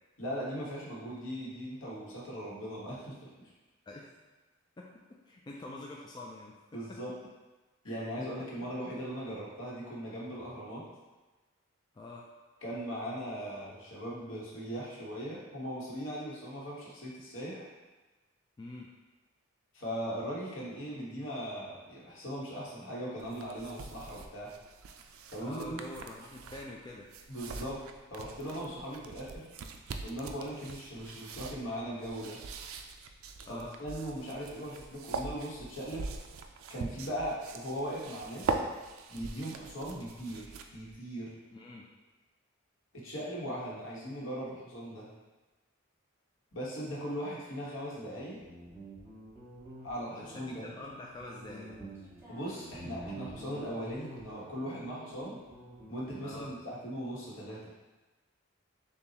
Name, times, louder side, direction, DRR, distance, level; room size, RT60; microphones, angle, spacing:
voice 1, 0.2-3.3 6.7-7.1 7.8-10.8 12.6-17.7 19.7-24.5 25.3-25.8 27.3-27.8 28.1-29.5 30.0-32.4 33.5-36.1 36.7-38.6 39.1-41.3 42.9-45.1 46.5-48.4 49.8-50.7 52.3-55.4 55.9-57.7, equal, 65° left, -5 dB, 1.2 m, -39 dB
voice 2, 5.3-7.0 7.8-8.0 11.9-12.3 18.6-18.9 25.4-27.1 33.5-33.7 41.5-42.0 50.2-51.9 56.2-56.5, left 2 dB, 20° left, -2 dB, 0.3 m, -46 dB
sound 1, 23.2-40.9, right 4 dB, 85° right, 0.4 m, -42 dB
Guitar, 48.1-56.6, right 2 dB, 15° right, 1.4 m, -48 dB
6.8 x 2.3 x 2.9 m, 1.2 s
head